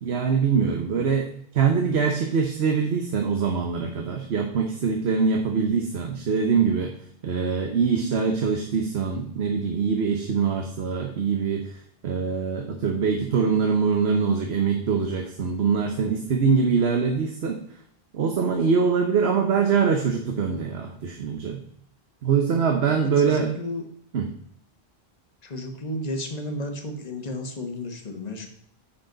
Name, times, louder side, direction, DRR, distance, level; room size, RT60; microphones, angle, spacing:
voice 1, 0.0-6.9 7.2-17.6 18.1-21.6 22.2-23.5 24.1-24.3, right 5 dB, 85° right, 4 dB, 1.2 m, -23 dB
voice 2, 23.0-23.8 25.4-28.5, left 1 dB, 40° left, 4 dB, 1.4 m, -32 dB
10.0 x 6.3 x 3.9 m, 0.67 s
omnidirectional pair, 1.1 m